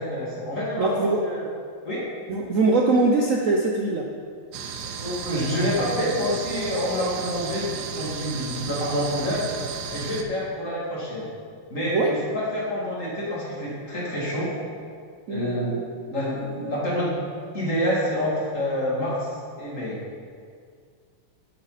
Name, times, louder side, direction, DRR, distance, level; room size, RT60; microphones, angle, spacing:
voice 1, 0.0-1.4 1.8-2.0 4.8-9.4 9.9-11.3 11.7-14.5 15.3-15.8 16.1-17.2 17.5-19.3 19.6-20.0, equal, 35° left, -7 dB, 3.0 m, -27 dB
voice 2, 0.8-1.2 2.3-4.1 11.9-12.2 15.3-15.8, right 3 dB, 80° right, 0 dB, 0.7 m, -22 dB
sound 1, 4.5-10.2, right 7 dB, 65° right, 1.1 m, -34 dB
11.0 x 8.0 x 4.1 m, 2.2 s
omnidirectional pair, 2.3 m